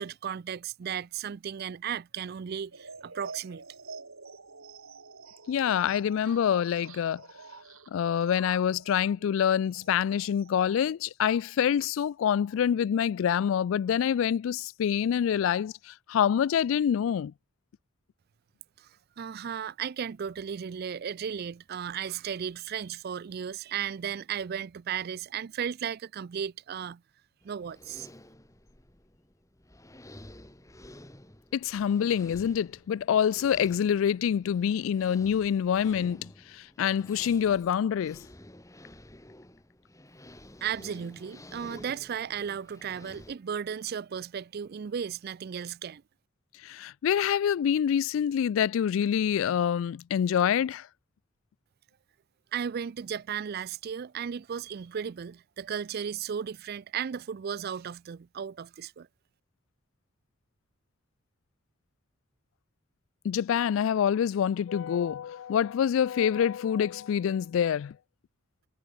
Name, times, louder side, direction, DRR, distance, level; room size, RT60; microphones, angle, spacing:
voice 1, 0.0-3.6 18.8-18.9 19.2-27.0 27.4-28.1 40.6-46.0 52.5-59.1, right 8 dB, 50° right, 0.4 m, -35 dB
sound 1, 2.7-10.8, right 4 dB, 85° right, 4.3 m, -48 dB
voice 2, 5.5-7.2 7.9-17.3 31.5-38.2 46.6-50.9 63.2-68.0, left 8 dB, 70° left, 0.3 m, -26 dB
sound 2, 27.4-43.4, left 1 dB, 15° left, 2.2 m, -51 dB
head